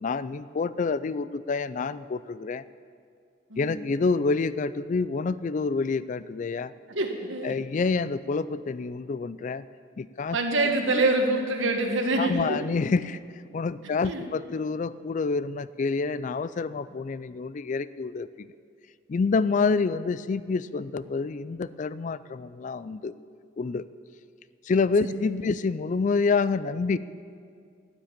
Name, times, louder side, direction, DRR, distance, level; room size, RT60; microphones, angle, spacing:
voice 1, 0.0-2.6 3.6-6.7 7.4-9.7 10.0-10.4 10.9-11.1 12.2-13.2 13.5-18.5 19.1-23.1 23.6-23.9 24.6-27.0, left 4 dB, 40° left, 16 dB, 0.3 m, -27 dB
voice 2, 6.9-7.5 10.3-12.6 14.0-14.3 25.0-25.1, right 2 dB, 80° right, 3 dB, 1.7 m, -25 dB
12.5 x 9.7 x 8.8 m, 2.3 s
head